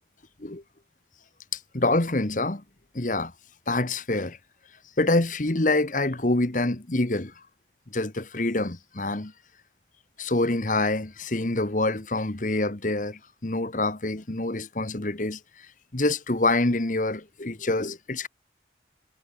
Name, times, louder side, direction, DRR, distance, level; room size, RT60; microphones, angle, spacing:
voice 1, 1.7-2.6 2.9-3.3 3.7-4.4 5.0-7.3 7.9-9.3 10.2-15.4 15.9-18.3, left 2 dB, 45° left, 1.4 m, -26 dB
head